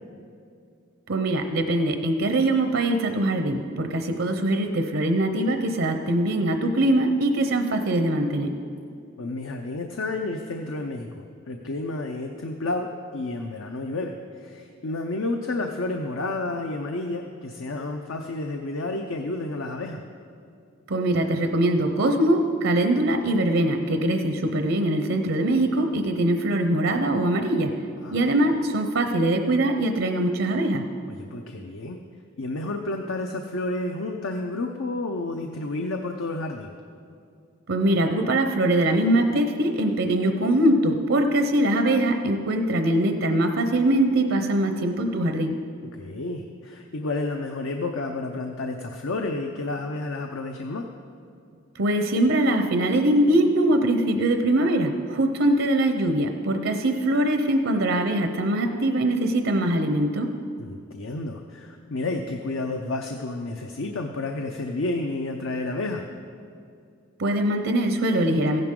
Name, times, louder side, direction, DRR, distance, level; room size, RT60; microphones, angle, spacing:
voice 1, 1.1-8.5 20.9-27.7 28.1-30.8 37.7-45.6 51.8-60.3 67.2-68.6, right 1 dB, 75° right, 6 dB, 0.7 m, -22 dB
voice 2, 9.2-20.0 28.0-28.5 31.1-32.0 32.4-36.7 45.9-50.9 60.6-66.1, left 2 dB, 75° left, 4 dB, 0.7 m, -31 dB
15.5 x 10.5 x 3.7 m, 2.4 s
head